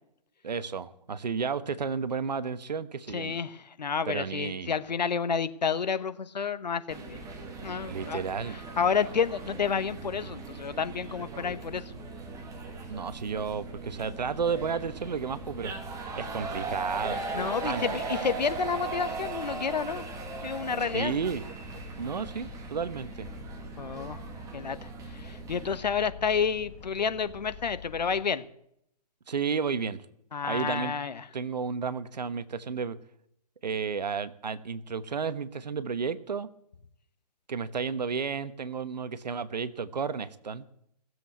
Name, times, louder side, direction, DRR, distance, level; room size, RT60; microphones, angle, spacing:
voice 1, 0.4-3.3 4.0-4.7 7.9-8.6 12.9-15.7 16.2-18.0 20.9-21.4 22.0-23.3 29.3-30.0 30.4-30.9 31.3-33.0 33.6-36.5 37.5-40.6, right 5 dB, 85° right, 14 dB, 1.1 m, -32 dB
voice 2, 3.1-7.2 7.6-12.1 17.3-20.0 20.4-21.2 23.8-24.2 24.5-28.4 30.3-31.3, left 6 dB, 85° left, 14 dB, 1.1 m, -30 dB
sound 1, 6.9-25.8, right 3 dB, 15° right, 2.1 m, -39 dB
sound 2, 12.4-28.2, left 6 dB, 15° left, 1.7 m, -49 dB
17.5 x 7.8 x 8.5 m, 0.74 s
hypercardioid pair, 145°, 21 cm